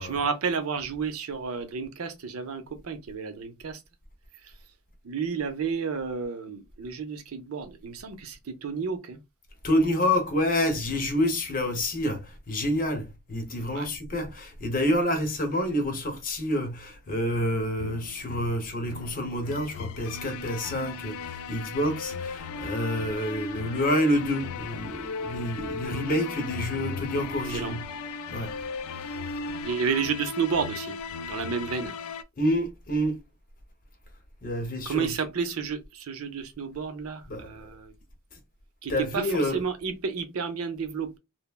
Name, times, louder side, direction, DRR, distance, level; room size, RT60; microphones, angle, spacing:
voice 1, 0.0-3.8 4.4-4.5 5.0-9.2 13.7-13.9 27.5-27.8 29.6-31.0 31.3-31.9 34.9-37.9 38.8-41.2, right 5 dB, 70° right, 0.5 m, -31 dB
voice 2, 9.6-27.8 28.3-28.5 32.4-33.2 34.4-35.1 37.3-37.5 38.9-39.6, left 1 dB, 40° left, 0.8 m, -28 dB
sound 1, 17.8-32.2, left 4 dB, 70° left, 0.3 m, -37 dB
3.2 x 2.0 x 2.2 m
head